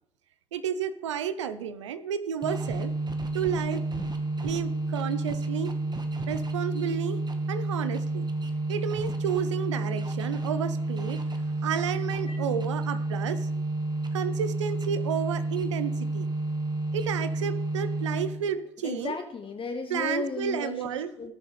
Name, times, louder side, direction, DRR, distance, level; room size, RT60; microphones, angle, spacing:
voice 1, 0.5-2.9 3.3-3.8 4.4-5.7 6.3-7.2 7.5-8.2 8.7-13.5 14.1-16.3 16.9-19.1 19.9-21.1, right 8 dB, 90° right, 13 dB, 0.5 m, -31 dB
sound 1, 2.4-18.5, right 2 dB, 30° right, 1.4 m, -30 dB
voice 2, 18.8-21.3, left 4 dB, 35° left, 7 dB, 1.0 m, -35 dB
17.0 x 6.8 x 3.3 m, 0.78 s
hypercardioid pair, 55°, 15 cm